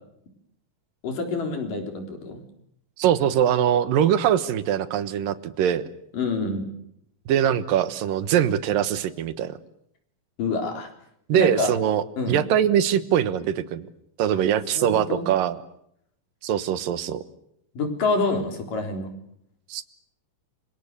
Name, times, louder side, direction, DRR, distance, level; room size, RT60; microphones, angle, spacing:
voice 1, 1.0-2.4 6.1-6.7 10.4-10.9 11.3-11.7 12.2-12.4 14.3-14.4 14.7-15.3 17.8-19.1, left 3 dB, 75° left, 4 dB, 5.6 m, -27 dB
voice 2, 3.0-5.8 7.3-9.6 11.3-13.9 14.2-15.6 16.4-17.2 19.7-19.8, right 10 dB, 85° right, 13 dB, 2.9 m, -22 dB
30.0 x 26.0 x 6.7 m, 0.73 s
omnidirectional pair, 3.8 m